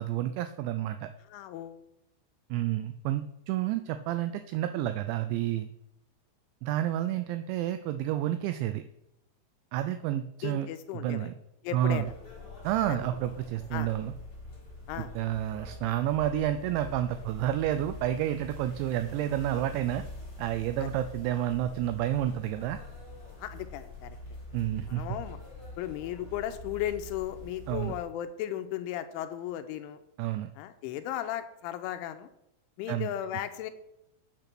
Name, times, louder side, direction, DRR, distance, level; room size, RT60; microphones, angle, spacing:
voice 1, 0.0-1.1 2.5-5.7 6.6-8.8 9.7-10.7 10.9-11.4 11.7-12.0 12.6-14.1 15.2-20.0 20.4-22.8 24.5-25.0 27.7-27.9 30.2-30.5 32.9-33.1, right 12 dB, 85° right, 10 dB, 2.6 m, -30 dB
voice 2, 1.3-1.8 10.4-11.3 11.6-12.1 12.9-13.0 13.7-13.9 14.9-15.1 20.8-20.9 23.4-24.2 24.9-25.4 25.8-30.0 30.6-32.3 32.8-33.7, left 11 dB, 85° left, 10 dB, 2.9 m, -36 dB
sound 1, 11.9-28.0, left 1 dB, 20° left, 1.6 m, -45 dB
9.0 x 6.8 x 5.9 m, 0.83 s
omnidirectional pair, 5.7 m